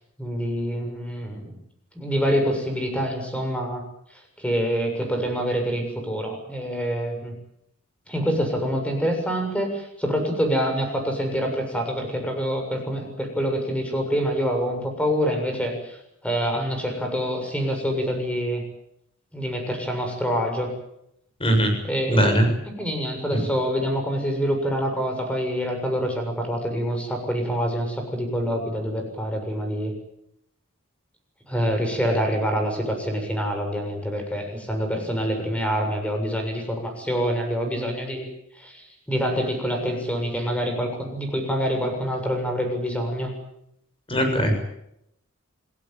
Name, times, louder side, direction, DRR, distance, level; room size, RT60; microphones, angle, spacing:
voice 1, 0.2-1.5 1.9-3.8 4.4-7.3 8.1-16.0 16.2-18.6 19.3-20.7 21.9-22.4 22.8-29.9 31.5-38.3 38.6-43.3, equal, 5° left, 4 dB, 7.2 m, -26 dB
voice 2, 21.4-21.7 22.1-22.5 23.3-23.4 44.1-44.5, equal, 25° left, 5 dB, 7.1 m, -20 dB
27.5 x 18.0 x 9.0 m, 0.78 s
head